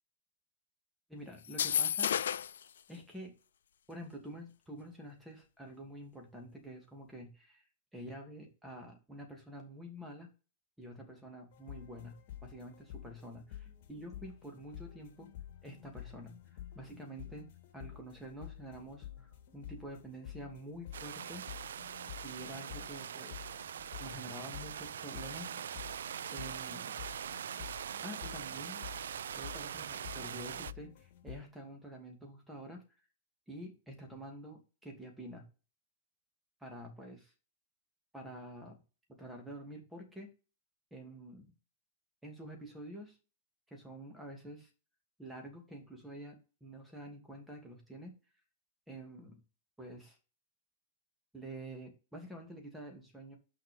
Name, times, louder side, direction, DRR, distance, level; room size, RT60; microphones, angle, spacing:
voice 1, 1.1-2.4 2.9-3.3 3.9-7.6 7.9-10.3 10.8-12.2 12.4-15.3 15.6-21.4 22.2-23.5 24.0-25.5 26.3-27.0 28.0-28.8 29.3-32.8 33.5-35.4 36.6-37.3 38.1-38.8 39.1-40.3 40.9-41.5 42.2-43.2 43.7-44.7 45.2-46.4 46.6-48.1 48.9-49.4 49.8-50.2 51.3-53.3, right 1 dB, 5° right, 2 dB, 2.5 m, -48 dB
sound 1, 1.4-2.6, left 9 dB, 90° left, 0.4 m, -31 dB
sound 2, 11.5-31.4, left 11 dB, 55° left, 2.8 m, -50 dB
sound 3, 20.9-30.7, right 8 dB, 90° right, 0.3 m, -42 dB
6.1 x 5.9 x 5.3 m, 0.33 s
hypercardioid pair, 145°, 0 cm